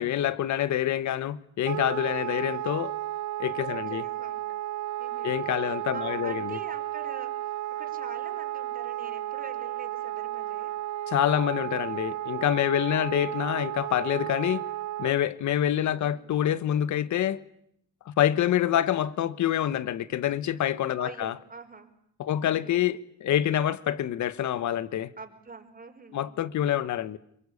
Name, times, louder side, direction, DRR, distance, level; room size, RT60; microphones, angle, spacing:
voice 1, 0.0-2.9 3.4-4.0 5.2-6.6 11.1-14.6 15.0-17.4 18.1-21.3 22.2-25.1 26.1-27.2, left 11 dB, 70° left, 1.4 m, -26 dB
Wind instrument woodwind instrument, 1.7-15.1, right 14 dB, 70° right, 1.3 m, -33 dB
voice 2, 3.7-4.4 5.0-5.3 5.6-7.3 7.8-10.7 13.1-13.6 15.8-16.2 21.0-21.9 22.3-22.8 25.2-26.2, right 4 dB, 30° right, 4.6 m, -45 dB
27.0 x 23.0 x 8.6 m
cardioid pair, 90°, 30 cm